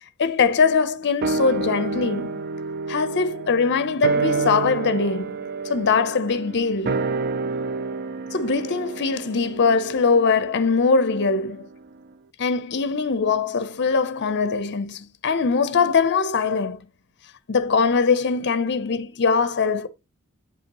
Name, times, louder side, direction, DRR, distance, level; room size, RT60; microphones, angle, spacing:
voice 1, 0.2-2.4 2.9-5.4 5.7-7.0 8.3-11.7 12.4-16.8 17.5-19.9, left 5 dB, 55° left, 0.6 m, -22 dB
sound 1, 1.2-11.8 12.1-12.2, right 4 dB, 45° right, 0.4 m, -29 dB
8.1 x 5.6 x 2.9 m
head